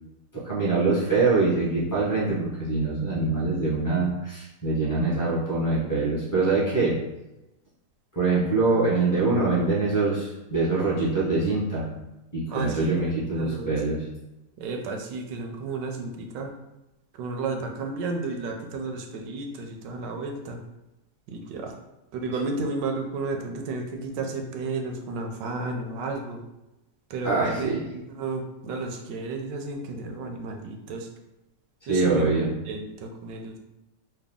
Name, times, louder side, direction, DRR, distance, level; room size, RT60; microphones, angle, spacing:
voice 1, 0.3-7.0 8.1-11.9 12.3-14.0 27.2-27.8 31.9-32.5, right 3 dB, 15° left, -7 dB, 0.6 m, -24 dB
voice 2, 12.5-12.9 13.4-13.7 14.6-16.5 17.1-20.6 21.3-21.8 22.1-26.4 27.1-31.1 31.9-32.2 32.7-33.6, right 3 dB, 80° right, 4 dB, 1.2 m, -32 dB
3.3 x 2.2 x 3.5 m, 0.97 s
omnidirectional pair, 1.9 m